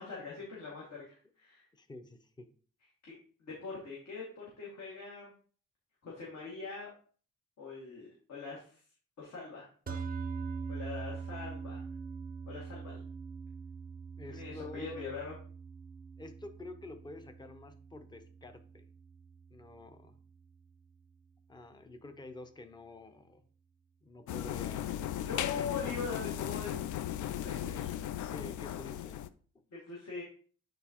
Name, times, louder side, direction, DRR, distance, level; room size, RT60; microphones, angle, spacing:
voice 1, 0.0-1.7 3.0-3.1 3.4-5.3 6.0-6.9 7.6-8.8 9.2-10.0 10.7-11.8 12.5-13.0 14.3-15.3 25.2-26.9 27.4-28.0 29.7-30.2, left 5 dB, 65° left, -5 dB, 2.1 m, -42 dB
voice 2, 1.7-2.5 14.2-15.1 16.2-18.9 19.5-20.2 21.5-23.4 24.0-25.0 25.6-25.9 27.5-28.0 28.3-29.2 29.5-29.6, left 2 dB, 15° left, 8 dB, 0.6 m, -49 dB
sound 1, 9.9-20.3, right 5 dB, 30° right, 0.4 m, -43 dB
sound 2, 24.3-29.3, left 11 dB, 85° left, 0.5 m, -37 dB
9.0 x 4.0 x 2.9 m, 0.43 s
cardioid pair, 130°, 29 cm